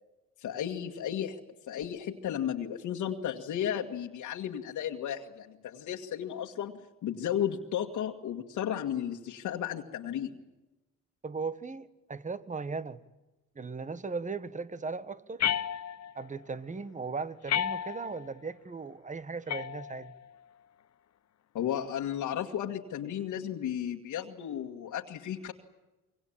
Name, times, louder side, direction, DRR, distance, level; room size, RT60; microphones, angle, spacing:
voice 1, 0.4-1.4 1.7-10.4 21.5-25.5, left 10 dB, 80° left, 2.0 m, -34 dB
voice 2, 11.2-13.0 13.5-15.4 16.1-20.1, right 4 dB, 25° right, 1.6 m, -37 dB
sound 1, 15.4-16.3 17.5-18.3 19.5-20.3, left 10 dB, 60° left, 1.0 m, -32 dB
25.5 x 23.5 x 8.8 m
cardioid pair, 90°, 30 cm